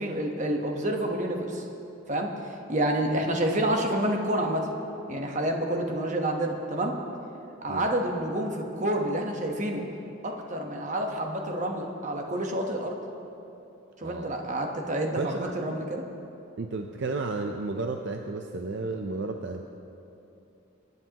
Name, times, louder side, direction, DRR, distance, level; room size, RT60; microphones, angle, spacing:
voice 1, 0.0-1.6 2.1-4.7 5.1-7.0 7.6-9.8 10.2-13.0 14.0-16.0, right 1 dB, 40° right, 2 dB, 1.1 m, -28 dB
voice 2, 15.2-15.5 16.6-19.6, right 3 dB, 60° right, 4 dB, 0.6 m, -32 dB
23.0 x 9.7 x 2.9 m, 2.8 s
head